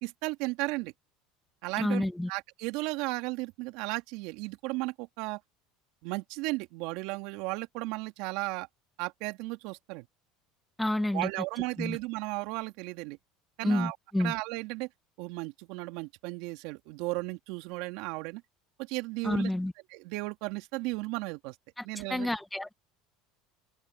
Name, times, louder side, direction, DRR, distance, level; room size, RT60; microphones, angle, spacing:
voice 1, 0.0-0.9 1.6-5.4 6.0-8.7 9.0-10.1 11.1-13.2 13.6-14.9 15.2-18.4 18.8-19.5 19.9-21.5 21.8-22.3, right 23 dB, 70° right, 2.7 m, -35 dB
voice 2, 1.8-2.3 10.8-11.3 11.8-12.0 13.6-14.3 19.2-19.7 21.8-22.7, left 1 dB, 5° left, 1.8 m, -29 dB
open air
hypercardioid pair, 85°, 0 cm